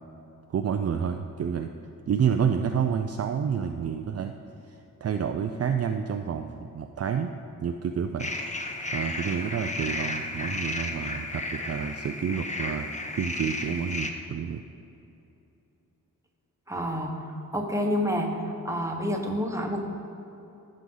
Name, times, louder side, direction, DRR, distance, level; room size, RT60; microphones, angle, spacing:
voice 1, 0.5-1.7 2.1-4.3 4.7-7.3 7.6-8.3 8.9-12.9 13.2-14.6, right 7 dB, 45° right, 5 dB, 0.4 m, -29 dB
sound 1, 8.2-14.1, left 2 dB, 20° left, 0.8 m, -33 dB
voice 2, 16.7-18.3 18.6-19.8, equal, 10° right, 1 dB, 1.2 m, -28 dB
15.0 x 6.5 x 3.9 m, 2.9 s
wide cardioid pair, 100°, 34 cm